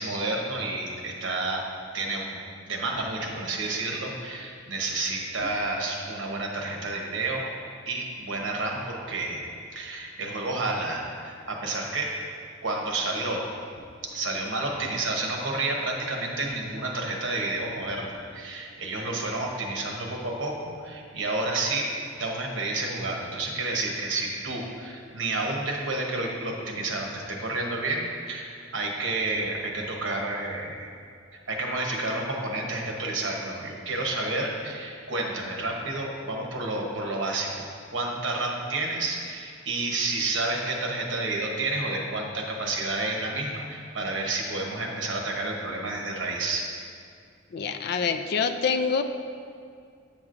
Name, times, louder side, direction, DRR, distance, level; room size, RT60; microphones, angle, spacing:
voice 1, 0.0-1.6 1.9-2.3 2.7-7.4 7.9-9.4 9.7-12.1 12.6-13.4 14.0-21.9 22.1-30.9 31.3-46.7, right 2 dB, 70° right, 0 dB, 1.0 m, -30 dB
voice 2, 47.5-49.0, left 5 dB, 55° left, 7 dB, 0.3 m, -26 dB
8.6 x 6.1 x 2.5 m, 2.3 s
head